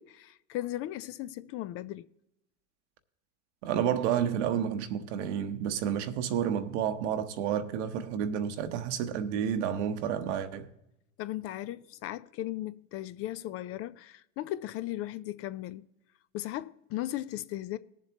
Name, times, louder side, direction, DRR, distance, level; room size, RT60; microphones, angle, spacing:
voice 1, 0.0-2.1 11.2-15.9 16.3-17.8, left 14 dB, 40° left, 0.4 m, -37 dB
voice 2, 3.6-10.7, right 9 dB, 70° right, 1.1 m, -30 dB
20.0 x 7.4 x 2.9 m
hypercardioid pair, 100°, 36 cm